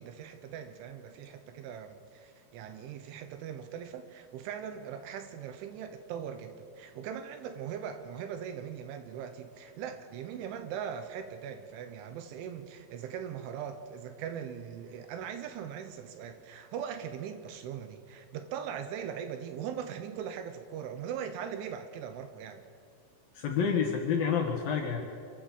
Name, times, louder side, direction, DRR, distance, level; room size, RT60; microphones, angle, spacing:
voice 1, 0.0-22.6, right 8 dB, 75° right, 8 dB, 3.2 m, -40 dB
voice 2, 23.3-25.0, left 6 dB, 60° left, 2 dB, 2.7 m, -28 dB
26.0 x 14.0 x 7.3 m, 2.4 s
omnidirectional pair, 6.0 m